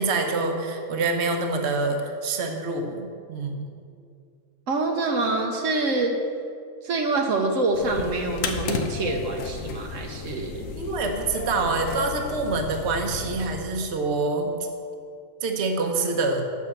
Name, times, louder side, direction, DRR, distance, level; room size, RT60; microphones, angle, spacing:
voice 1, 0.0-3.7 10.7-14.5 15.4-16.4, right 3 dB, 60° right, 3 dB, 1.2 m, -26 dB
voice 2, 4.7-6.2 6.8-10.6, right 3 dB, 75° right, 2 dB, 1.2 m, -26 dB
sound 1, 7.7-13.6, left 5 dB, 75° left, 1.2 m, -34 dB
8.3 x 6.3 x 7.2 m, 2.3 s
omnidirectional pair, 1.4 m